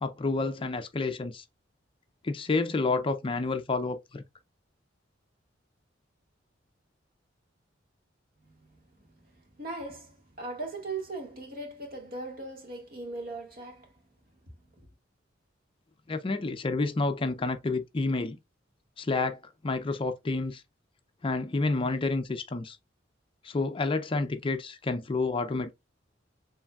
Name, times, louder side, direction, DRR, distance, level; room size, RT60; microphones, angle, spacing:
voice 1, 0.0-1.4 2.2-4.2 16.1-18.4 19.0-20.6 21.2-22.8 23.4-25.7, left 3 dB, 30° left, 0.4 m, -29 dB
voice 2, 9.6-13.9, right 2 dB, 50° right, 1.8 m, -38 dB
7.0 x 3.2 x 2.3 m
head